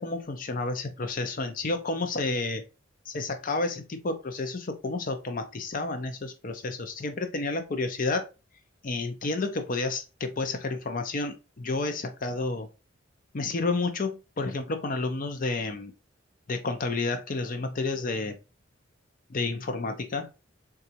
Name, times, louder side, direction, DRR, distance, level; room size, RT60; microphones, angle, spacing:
voice 1, 0.0-2.6 3.1-8.2 8.8-12.7 13.3-15.9 16.5-18.4 19.3-20.3, left 3 dB, 45° left, 0.5 m, -30 dB
3.9 x 2.3 x 2.7 m
head